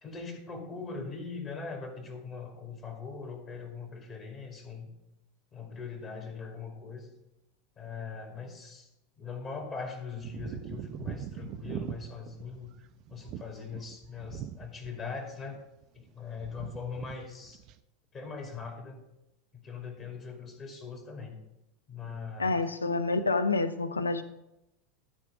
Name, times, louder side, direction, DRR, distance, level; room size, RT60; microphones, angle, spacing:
voice 1, 0.0-4.9 5.5-7.1 7.8-8.9 9.2-12.7 13.1-15.6 15.9-17.6 18.1-19.0 19.5-21.4 21.9-22.6, left 5 dB, 30° left, 2 dB, 2.4 m, -41 dB
sound 1, 10.2-15.2 15.4-16.1 16.4-17.2 17.4-17.8, right 10 dB, 40° right, 0.5 m, -41 dB
voice 2, 22.4-24.2, left 3 dB, 80° left, 13 dB, 0.6 m, -28 dB
13.0 x 4.5 x 5.9 m, 0.89 s
figure-of-eight pair, 85°, 0 cm